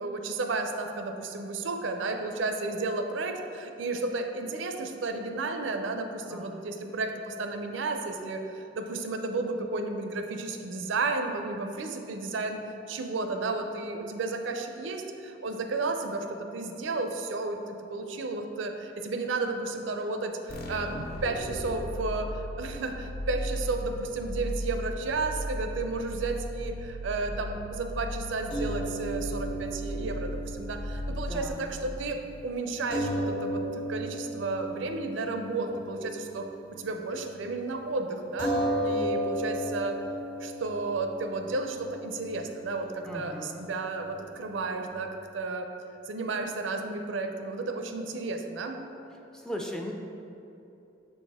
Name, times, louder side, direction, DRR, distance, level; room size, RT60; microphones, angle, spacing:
voice 1, 0.0-12.6 12.9-20.9 21.2-40.0 40.4-45.7 46.1-48.8, right 3 dB, 75° right, 5 dB, 0.5 m, -33 dB
voice 2, 6.3-6.7 31.1-31.8 43.1-43.7 49.3-49.9, equal, 5° left, 1 dB, 0.3 m, -38 dB
sound 1, 20.5-32.0, equal, 50° left, 0.6 m, -36 dB
sound 2, 28.5-37.0 37.3-37.5 38.4-44.9, right 1 dB, 75° left, 1.4 m, -35 dB
6.7 x 4.2 x 3.5 m, 2.9 s
head